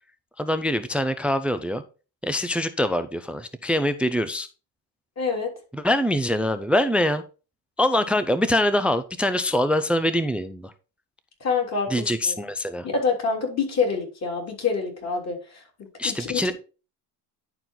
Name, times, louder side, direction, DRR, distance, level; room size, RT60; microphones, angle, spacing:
voice 1, 0.4-1.8 2.2-4.5 5.7-7.2 7.8-10.7 11.9-12.9 16.0-16.5, left 1 dB, 5° right, 13 dB, 0.4 m, -24 dB
voice 2, 5.2-5.5 11.4-12.3 12.9-15.6 16.0-16.4, left 5 dB, 35° left, 0 dB, 3.5 m, -26 dB
10.5 x 4.5 x 3.9 m, 0.34 s
supercardioid pair, 105°, 47 cm